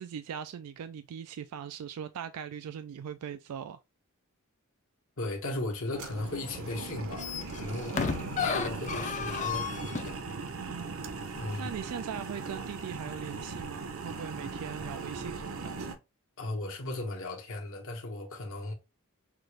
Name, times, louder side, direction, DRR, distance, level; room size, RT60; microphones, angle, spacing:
voice 1, 0.0-3.8 7.9-8.5 10.6-11.0 11.6-15.8, right 8 dB, 85° right, 0.3 m, -40 dB
voice 2, 5.2-7.3 7.5-8.0 8.4-10.2 11.3-11.7 16.4-18.7, left 2 dB, 65° left, 1.3 m, -36 dB
sound 1, 5.9-16.0, right 4 dB, 65° right, 0.7 m, -39 dB
sound 2, 6.5-6.7 7.0-10.2 10.7-10.8, left 6 dB, 35° left, 0.4 m, -34 dB
5.9 x 2.5 x 3.2 m
head